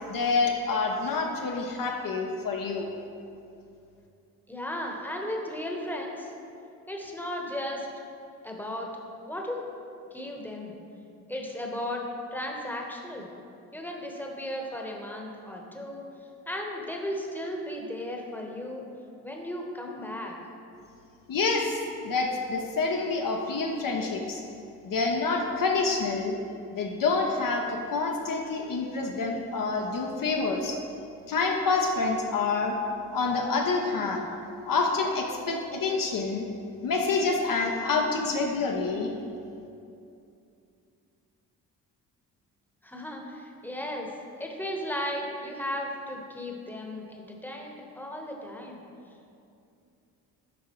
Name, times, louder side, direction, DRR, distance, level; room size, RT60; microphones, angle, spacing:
voice 1, 0.1-2.9 21.3-24.4 24.8-26.3 26.7-30.8 31.3-32.8 33.1-34.2 34.7-36.4 36.8-39.1, left 4 dB, 50° left, 1 dB, 0.7 m, -27 dB
voice 2, 4.5-6.3 6.9-7.9 8.4-8.9 9.3-9.7 10.1-10.7 11.3-12.1 12.3-13.3 13.7-16.0 16.5-18.8 19.2-20.3 42.8-44.1 44.4-48.8, left 1 dB, 5° left, 0 dB, 1.0 m, -35 dB
10.0 x 3.6 x 3.0 m, 2.6 s
supercardioid pair, 60°, 42 cm